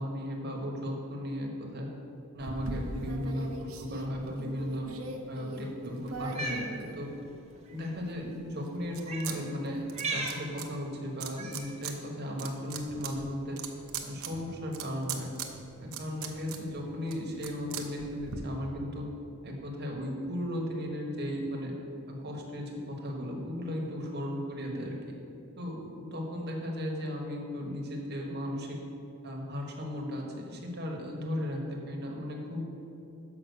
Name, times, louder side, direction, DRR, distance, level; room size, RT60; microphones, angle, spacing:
voice 1, 0.0-1.9 2.3-4.9 5.3-7.1 7.7-9.8 10.1-13.6 14.0-15.3 15.8-19.1 19.4-21.7 22.1-25.0 25.6-28.8 29.2-32.6, left 1 dB, 50° right, 0 dB, 1.4 m, -36 dB
sound 1, 2.4-7.5 8.0-9.4 9.6-10.7 11.2-11.9 12.3-18.4, right 4 dB, 85° right, 0.8 m, -41 dB
Cat, 6.2-6.7 7.7-7.9 9.0-9.3 9.9-10.4 11.4-11.7, right 2 dB, 30° right, 0.9 m, -35 dB
6.6 x 5.7 x 6.5 m, 2.7 s
head